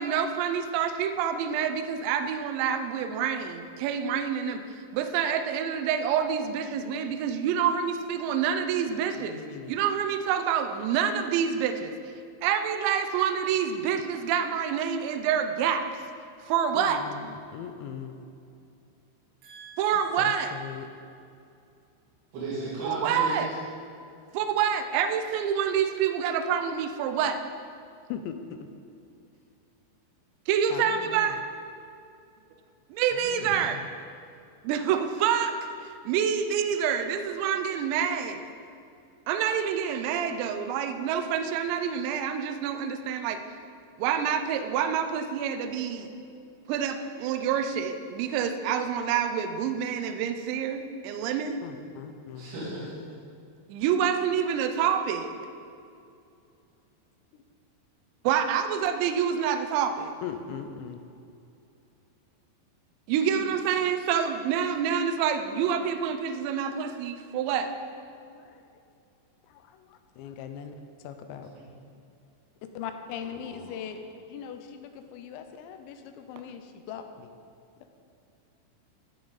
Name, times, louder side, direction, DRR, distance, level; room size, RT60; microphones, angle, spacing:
voice 1, 0.0-4.6 4.9-9.4 9.7-11.9 12.4-15.8 16.5-17.0 19.8-20.5 22.8-23.5 24.3-27.4 30.5-31.4 32.9-33.8 34.6-35.6 35.8-38.4 39.3-43.4 44.0-46.1 46.7-51.6 53.7-55.3 58.2-60.1 63.1-67.7, right 8 dB, 80° right, 7 dB, 2.8 m, -27 dB
voice 2, 8.9-9.8 16.7-18.2 19.9-20.9 28.1-28.7 30.7-31.4 33.1-33.9 51.6-52.6 60.2-61.0 63.3-63.6 68.0-68.6 69.4-70.8 71.0-71.5 72.7-77.3, left 8 dB, 80° left, 7 dB, 2.8 m, -40 dB
voice 3, 19.4-19.9 22.3-23.4 46.0-46.1 52.4-52.9 71.5-71.6 73.4-73.6, right 2 dB, 60° right, -10 dB, 4.6 m, -36 dB
16.5 x 7.0 x 4.0 m, 2.5 s
omnidirectional pair, 5.4 m